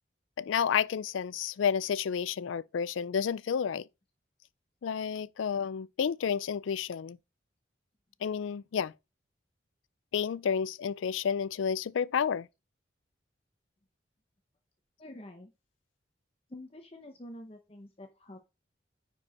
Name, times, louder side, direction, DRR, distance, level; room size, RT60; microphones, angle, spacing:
voice 1, 0.4-3.9 4.8-7.2 8.2-8.9 10.1-12.5, left 7 dB, 85° left, 0.4 m, -30 dB
voice 2, 15.0-15.5 16.5-18.4, left 1 dB, 30° left, 0.8 m, -47 dB
9.7 x 4.6 x 4.2 m
head